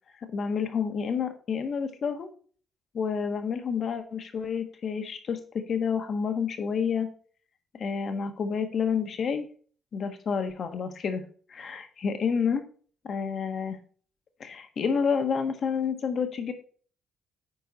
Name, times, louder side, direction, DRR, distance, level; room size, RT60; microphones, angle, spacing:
voice 1, 0.2-2.3 2.9-7.1 7.7-9.5 9.9-11.2 11.5-12.6 13.0-13.8 14.4-16.5, left 6 dB, 55° left, 7 dB, 1.4 m, -29 dB
9.2 x 4.5 x 4.1 m, 0.44 s
cardioid pair, 90°, 0 cm